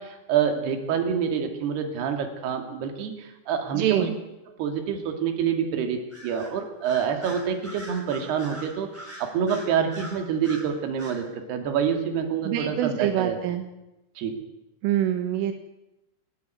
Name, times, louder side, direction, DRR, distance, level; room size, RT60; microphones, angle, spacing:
voice 1, 0.0-4.1 4.6-8.9 9.2-13.4 14.2-14.4, right 7 dB, 60° right, 5 dB, 4.2 m, -27 dB
voice 2, 3.7-4.2 12.4-13.7 14.8-15.5, right 11 dB, 80° right, 7 dB, 3.9 m, -25 dB
Bird vocalization bird call bird song, 6.1-6.5 6.8-10.7 11.0-11.2, right 1 dB, 5° right, 5.4 m, -42 dB
29.5 x 12.5 x 9.3 m, 0.96 s
omnidirectional pair, 5.7 m